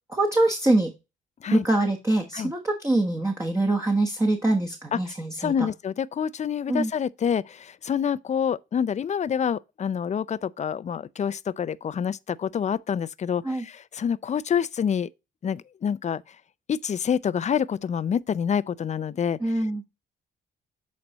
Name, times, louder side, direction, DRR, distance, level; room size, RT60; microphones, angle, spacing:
voice 1, 0.1-0.9 1.5-5.5 6.7-6.9 13.4-13.6 19.4-19.8, right 2 dB, 15° right, 1.2 m, -24 dB
voice 2, 5.4-15.1 15.4-16.2 16.7-19.5, left 7 dB, 35° left, 0.5 m, -27 dB
7.8 x 4.2 x 4.1 m
cardioid pair, 90°, 20 cm